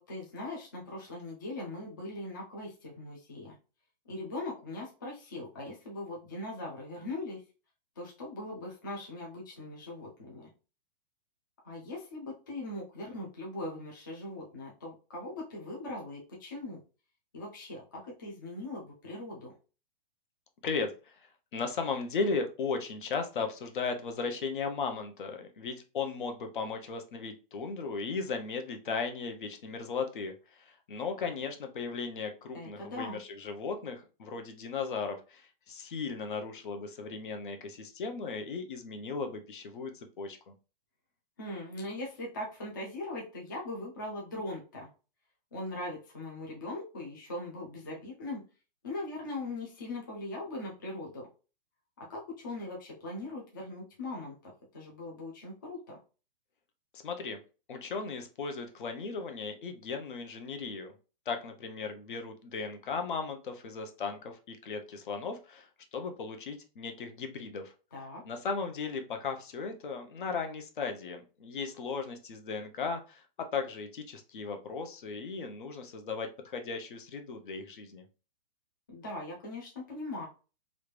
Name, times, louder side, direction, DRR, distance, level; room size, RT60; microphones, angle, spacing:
voice 1, 0.0-3.6 4.1-7.4 8.0-10.5 11.6-16.8 17.3-19.5 32.5-33.2 41.4-44.9 45.5-48.4 48.8-51.3 52.0-54.3 54.7-56.0 67.9-68.2 78.9-80.3, left 2 dB, 20° left, -3 dB, 0.4 m, -40 dB
voice 2, 20.6-40.5 56.9-57.4 57.7-61.0 61.3-67.7 68.2-73.3 73.5-78.0, left 4 dB, 60° left, 6 dB, 0.7 m, -36 dB
3.2 x 2.5 x 3.2 m, 0.34 s
hypercardioid pair, 180°, 29 cm